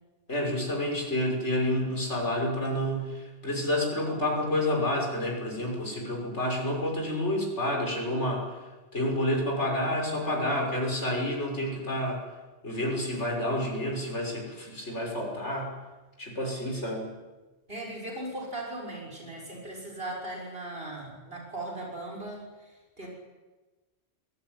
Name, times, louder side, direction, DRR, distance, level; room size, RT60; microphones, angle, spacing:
voice 1, 0.3-12.2 12.6-15.7 16.2-17.1, left 1 dB, 70° left, 1 dB, 6.4 m, -29 dB
voice 2, 17.7-22.7 23.0-23.1, right 1 dB, 50° right, 0 dB, 6.8 m, -38 dB
24.0 x 19.5 x 9.8 m, 1.2 s
omnidirectional pair, 1.2 m